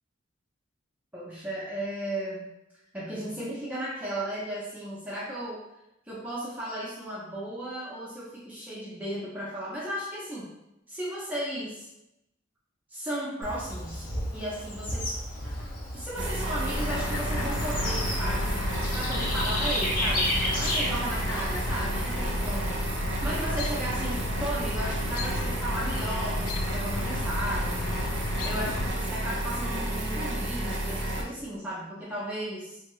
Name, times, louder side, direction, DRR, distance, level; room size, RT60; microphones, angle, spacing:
voice 1, 1.1-2.5 2.9-5.6 6.1-10.5 10.9-11.9 12.9-15.1 15.9-22.7 23.2-28.0 28.4-32.8, right 1 dB, 10° right, -8 dB, 0.5 m, -35 dB
Bird / Insect, 13.4-22.0, left 1 dB, 40° left, 0.7 m, -33 dB
sound 1, 16.2-31.2, right 1 dB, 60° right, 0.6 m, -31 dB
Chirp tweet, 16.7-28.9, left 3 dB, 90° left, 0.3 m, -34 dB
2.8 x 2.6 x 3.0 m, 0.87 s
head